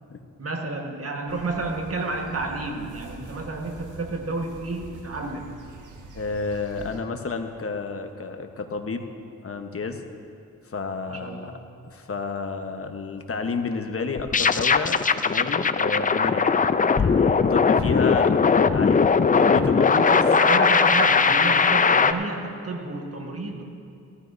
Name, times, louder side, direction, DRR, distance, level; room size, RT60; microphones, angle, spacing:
voice 1, 0.4-5.6 11.1-11.6 17.7-17.8 19.9-23.6, right 3 dB, 50° right, 2 dB, 1.4 m, -30 dB
sound 1, 1.3-7.0, right 3 dB, 90° right, 1.0 m, -44 dB
voice 2, 6.1-9.1 9.4-10.0 10.7-11.5 11.9-16.5 16.9-20.2, left 4 dB, 50° left, 5 dB, 1.1 m, -31 dB
sound 2, 14.2-22.1, left 5 dB, 25° left, 0.4 m, -19 dB
17.5 x 13.0 x 2.7 m, 2.5 s
cardioid pair, 70°, 30 cm